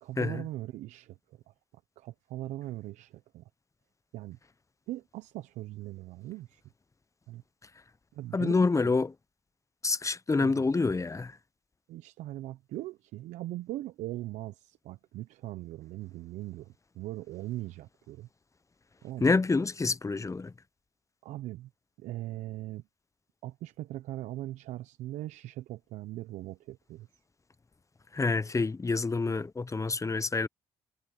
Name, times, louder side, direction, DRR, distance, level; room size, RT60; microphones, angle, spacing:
voice 1, 0.0-1.2 1.5-1.6 2.0-3.4 4.1-4.4 4.9-6.6 7.3-7.4 8.1-8.9 10.4-10.7 11.9-18.3 19.0-19.3 21.2-21.7 22.0-22.8 23.4-27.1, right 15 dB, 75° right, 1.0 m, -40 dB
voice 2, 8.3-9.1 9.8-11.3 19.2-20.5 28.1-30.5, left 3 dB, 25° left, 1.0 m, -27 dB
hypercardioid pair, 50°, 12 cm